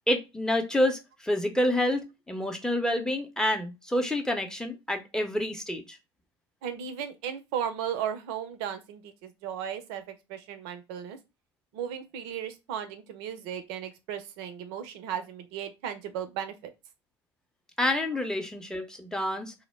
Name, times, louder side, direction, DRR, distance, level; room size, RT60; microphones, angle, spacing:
voice 1, 0.1-6.0 17.8-19.5, left 1 dB, 5° left, 0.6 m, -28 dB
voice 2, 6.6-10.0 10.3-11.2 11.7-16.5, right 9 dB, 65° right, 0.6 m, -35 dB
2.1 x 2.0 x 3.2 m
hypercardioid pair, 70°, 14 cm